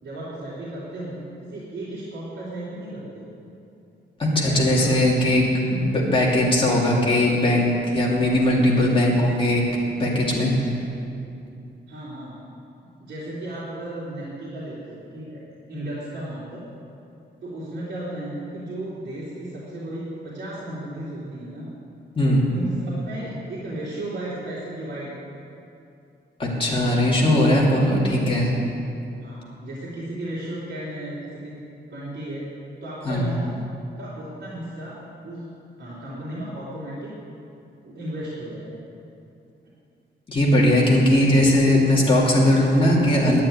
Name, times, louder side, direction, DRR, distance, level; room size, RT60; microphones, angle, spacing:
voice 1, 0.0-3.3 4.3-5.0 11.9-12.4 13.0-15.4 15.7-16.6 17.4-21.7 22.5-25.1 29.2-31.5 31.9-32.5 32.8-33.5 34.0-35.0 35.2-35.4 35.8-37.1 37.8-38.8, right 1 dB, 60° right, -10 dB, 3.3 m, -34 dB
voice 2, 4.2-9.6 10.0-10.7 22.2-22.4 26.4-28.5 33.0-33.3 40.3-43.4, left 1 dB, 30° left, -4 dB, 2.6 m, -19 dB
10.5 x 8.7 x 9.5 m, 2.7 s
wide cardioid pair, 175°, 19 cm